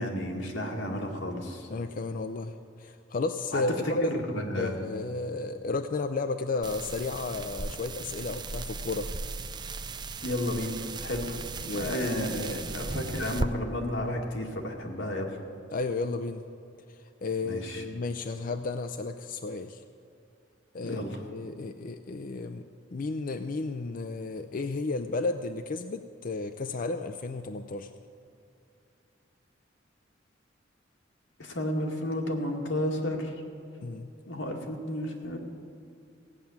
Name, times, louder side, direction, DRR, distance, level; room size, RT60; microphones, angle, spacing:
voice 1, 0.0-1.7 3.5-4.9 10.2-11.4 11.7-15.4 17.4-17.8 20.8-21.2 31.4-33.3 34.3-35.4, left 1 dB, 90° left, 0 dB, 2.0 m, -32 dB
voice 2, 1.7-4.2 4.6-9.1 11.6-11.9 15.7-16.4 16.9-19.8 20.7-21.0 21.3-22.6 22.9-27.9 33.8-34.1, left 3 dB, 45° left, 8 dB, 0.5 m, -33 dB
sound 1, 6.6-13.5, right 3 dB, 25° right, 0.4 m, -36 dB
16.5 x 9.1 x 7.1 m, 2.6 s
head